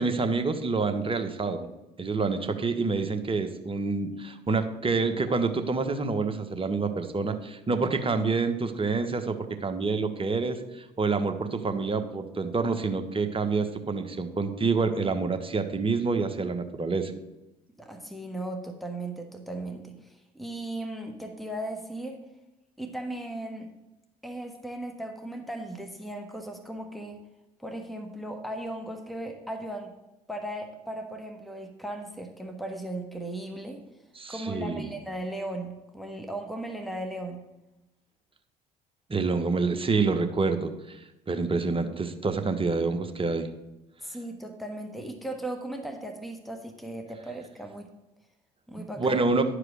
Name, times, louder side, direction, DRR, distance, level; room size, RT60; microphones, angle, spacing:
voice 1, 0.0-1.7 2.0-17.1 34.2-34.9 39.1-41.0 41.3-43.5 49.0-49.4, right 4 dB, 25° right, 8 dB, 1.3 m, -27 dB
voice 2, 17.8-22.2 22.8-23.7 24.2-27.2 27.6-29.9 30.3-33.8 34.3-37.4 44.0-47.9 48.7-49.2, right 1 dB, ahead, 6 dB, 1.4 m, -37 dB
11.0 x 5.0 x 6.4 m, 0.96 s
hypercardioid pair, 60°, 20 cm